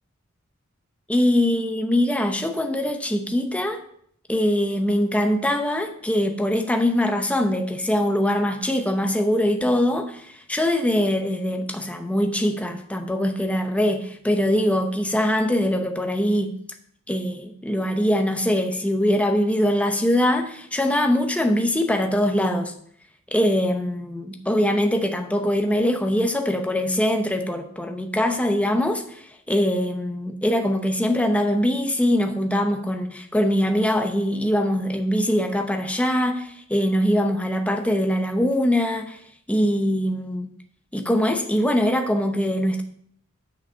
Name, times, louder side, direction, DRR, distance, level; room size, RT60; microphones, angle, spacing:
voice 1, 1.1-3.8 4.3-16.6 17.1-22.7 23.3-39.2 39.5-40.5 40.9-42.8, equal, 5° left, 0.7 m, -22 dB
7.8 x 6.2 x 5.6 m
head